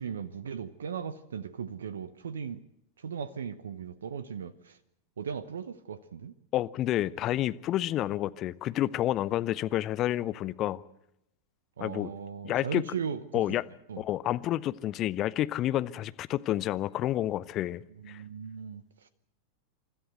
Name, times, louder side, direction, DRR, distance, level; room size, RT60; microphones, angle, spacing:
voice 1, 0.0-2.6 3.0-4.8 5.2-6.3 11.8-13.4 13.9-14.0 18.0-18.8, right 7 dB, 65° right, 0.8 m, -37 dB
voice 2, 6.5-10.8 11.8-12.1 12.4-12.8 13.3-13.7 14.0-18.2, left 13 dB, 35° left, 0.8 m, -29 dB
29.0 x 13.5 x 8.0 m
figure-of-eight pair, 90°, 0 cm